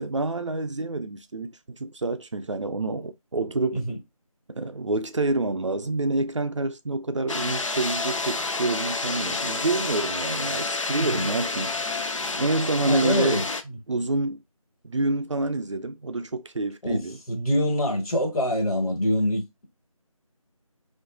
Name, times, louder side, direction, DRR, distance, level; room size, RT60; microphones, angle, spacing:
voice 1, 0.0-3.8 4.5-11.7 12.4-13.4 13.9-14.4 14.8-17.2, right 2 dB, 55° right, 0.4 m, -27 dB
sound 1, 7.3-13.6, left 3 dB, 60° left, 0.4 m, -29 dB
voice 2, 11.0-11.3 12.8-13.8 16.8-17.0 17.3-19.7, equal, 80° left, 1.3 m, -25 dB
2.7 x 2.5 x 2.3 m
figure-of-eight pair, 175°, 18 cm